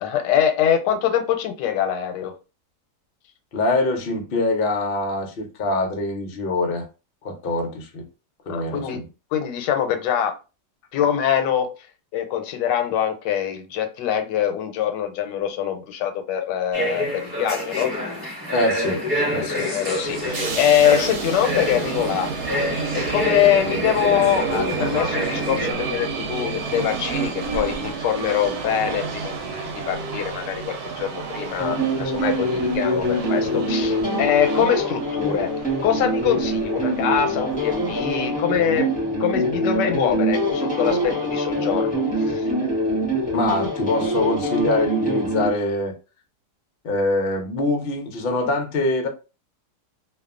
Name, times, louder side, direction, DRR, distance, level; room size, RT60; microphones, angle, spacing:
voice 1, 0.0-2.3 8.5-9.0 9.3-10.3 10.9-11.7 12.1-17.9 19.6-22.3 22.9-35.5 35.8-38.9 39.2-42.5, left 9 dB, 90° left, 1.2 m, -23 dB
voice 2, 3.5-6.9 7.2-8.0 8.5-9.1 18.5-19.0 19.3-19.7 43.3-45.9 46.8-49.1, left 2 dB, 65° left, 0.5 m, -24 dB
sound 1, 16.7-25.7, equal, 15° right, 1.2 m, -27 dB
sound 2, 19.9-38.3, right 5 dB, 70° right, 1.1 m, -31 dB
sound 3, 31.6-45.5, equal, 10° left, 0.5 m, -24 dB
2.6 x 2.3 x 2.3 m
omnidirectional pair, 1.8 m